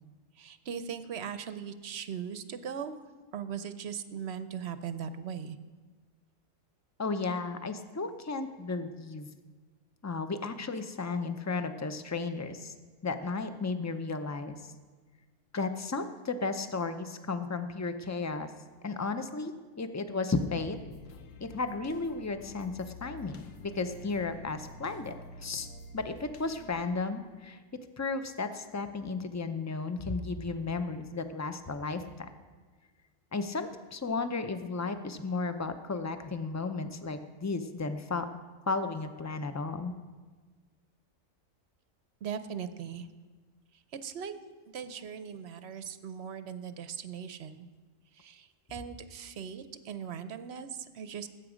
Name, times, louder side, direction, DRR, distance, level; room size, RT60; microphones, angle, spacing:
voice 1, 0.4-3.0 3.3-5.6 42.2-43.1 43.9-44.3 44.7-47.7 48.2-51.3, right 7 dB, 60° right, 11 dB, 0.8 m, -39 dB
voice 2, 7.0-9.3 10.0-12.7 13.0-14.5 15.5-18.5 18.8-20.8 21.4-25.1 25.4-25.7 25.9-27.6 28.0-32.3 33.3-38.3 38.7-39.9, left 3 dB, 25° left, 9 dB, 0.3 m, -34 dB
sound 1, 20.7-26.8, left 3 dB, 75° left, 1.3 m, -49 dB
19.0 x 8.3 x 5.0 m, 1.4 s
omnidirectional pair, 1.4 m